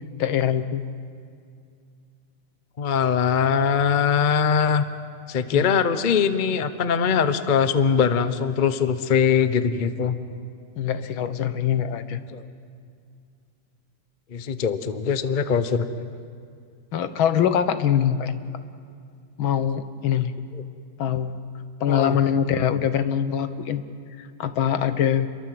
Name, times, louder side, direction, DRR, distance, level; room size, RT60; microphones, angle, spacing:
voice 1, 0.2-0.8 5.5-5.7 10.8-12.2 16.9-18.5 19.4-20.3 21.0-21.4 21.8-23.8 24.2-25.3, left 9 dB, 85° left, 11 dB, 1.9 m, -23 dB
voice 2, 2.8-4.8 5.3-10.2 12.2-12.5 14.3-16.1 20.5-20.6 21.9-22.2, left 6 dB, 35° left, 11 dB, 0.8 m, -22 dB
28.5 x 22.5 x 7.8 m, 2.3 s
omnidirectional pair, 2.1 m